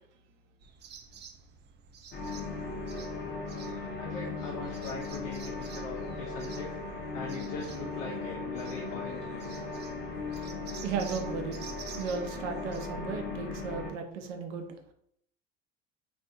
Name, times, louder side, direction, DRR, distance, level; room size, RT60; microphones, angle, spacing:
sound 1, 0.6-12.8, right 7 dB, 30° right, 0.4 m, -51 dB
sound 2, 2.1-13.9, left 3 dB, 30° left, 0.8 m, -37 dB
voice 1, 4.0-6.7 7.1-9.6, left 4 dB, 75° left, -2 dB, 0.7 m, -41 dB
voice 2, 10.8-11.6 12.0-14.7, right 5 dB, 75° right, 5 dB, 0.7 m, -35 dB
3.4 x 2.6 x 2.6 m, 0.70 s
hypercardioid pair, 75°, 37 cm